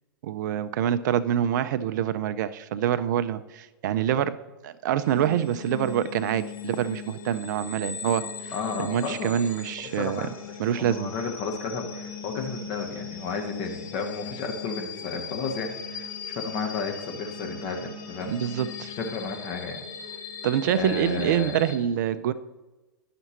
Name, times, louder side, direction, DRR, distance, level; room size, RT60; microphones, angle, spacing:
voice 1, 0.2-4.3 4.6-8.5 8.8-10.3 10.6-11.1 18.2-18.9 20.4-22.3, right 10 dB, 55° right, 12 dB, 0.4 m, -26 dB
sound 1, 5.0-21.8, left 6 dB, 65° left, 1.2 m, -39 dB
voice 2, 8.5-9.3 9.8-10.3 10.7-18.3 18.8-19.8 20.6-21.6, left 4 dB, 40° left, 2 dB, 1.2 m, -33 dB
10.5 x 5.9 x 2.8 m, 1.2 s
figure-of-eight pair, 110°, 12 cm